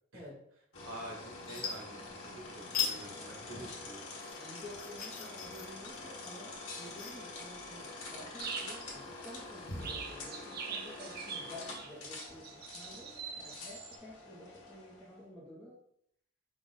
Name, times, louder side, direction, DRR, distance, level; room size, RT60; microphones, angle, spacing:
sound 1, 0.7-15.1, left 2 dB, 90° left, 1.3 m, -46 dB
sound 2, 0.9-1.1 1.4-2.4 2.7-3.0 3.4-9.9, left 7 dB, 45° left, 0.8 m, -41 dB
voice 1, 0.9-4.1, right 1 dB, 75° right, -1 dB, 1.4 m, -48 dB
voice 2, 4.4-15.7, left 1 dB, 5° left, -10 dB, 1.0 m, -51 dB
sound 3, 8.4-8.9 9.5-9.6 9.8-14.0, right 6 dB, 45° right, 0.5 m, -43 dB
4.9 x 2.5 x 4.1 m, 0.69 s
head